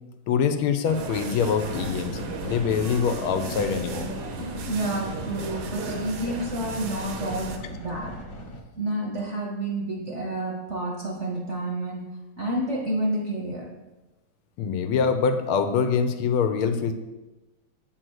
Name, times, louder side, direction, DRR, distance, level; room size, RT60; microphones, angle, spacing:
voice 1, 0.3-2.1 2.4-4.1 14.6-16.9, left 6 dB, 80° left, 8 dB, 1.5 m, -24 dB
sound 1, 0.8-7.6, right 4 dB, 70° right, 1.5 m, -35 dB
sound 2, 1.6-8.6, left 1 dB, 50° left, 1.2 m, -38 dB
voice 2, 4.6-8.2 8.8-12.0 12.4-13.7, right 1 dB, 45° right, -1 dB, 1.0 m, -29 dB
7.8 x 4.0 x 6.2 m, 1.1 s
omnidirectional pair, 2.3 m